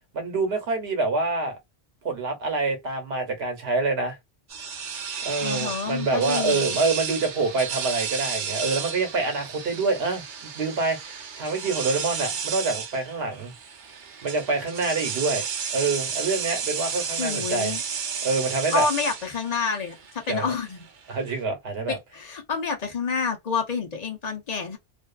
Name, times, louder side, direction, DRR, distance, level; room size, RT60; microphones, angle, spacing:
voice 1, 0.1-1.6 2.0-4.2 5.2-13.5 14.2-15.4 15.7-17.7 18.2-18.9 20.3-20.4 21.1-22.0, right 3 dB, 70° right, 1.1 m, -26 dB
sound 1, 4.5-21.4, right 6 dB, 55° right, 0.7 m, -32 dB
voice 2, 5.4-6.8 17.2-17.8 18.7-20.9 21.9-24.8, left 5 dB, 45° left, 0.7 m, -28 dB
2.5 x 2.3 x 2.3 m
omnidirectional pair, 1.1 m